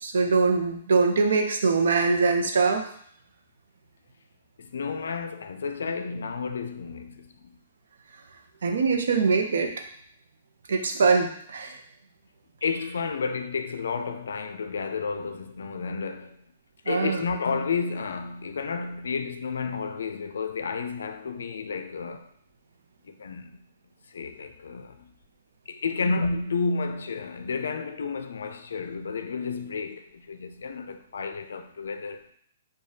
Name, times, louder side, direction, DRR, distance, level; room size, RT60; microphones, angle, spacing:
voice 1, 0.0-2.8 8.6-9.7 10.7-11.7 16.9-17.2, right 4 dB, 75° right, 0.6 m, -22 dB
voice 2, 4.6-7.6 12.6-16.4 16.9-22.3 23.0-23.6 24.1-25.1 25.7-32.2, left 4 dB, 90° left, 0.4 m, -31 dB
4.7 x 2.2 x 2.7 m
hypercardioid pair, 170°, 0 cm